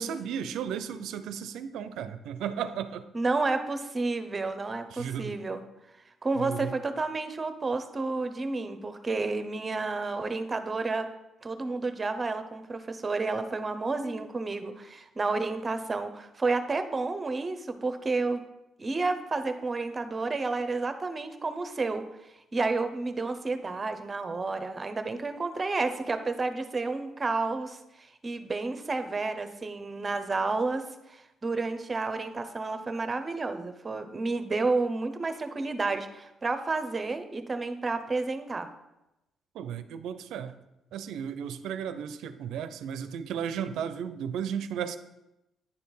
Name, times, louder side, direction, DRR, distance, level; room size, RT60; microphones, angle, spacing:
voice 1, 0.0-3.0 4.9-5.4 6.4-6.7 39.5-40.5 40.9-45.0, right 8 dB, 85° right, 11 dB, 0.5 m, -34 dB
voice 2, 3.1-5.6 6.2-11.1 11.4-18.4 18.8-22.1 22.5-27.8 28.2-38.7, right 3 dB, 30° right, 9 dB, 0.8 m, -30 dB
9.7 x 4.5 x 5.4 m, 0.93 s
cardioid pair, 90°, 0 cm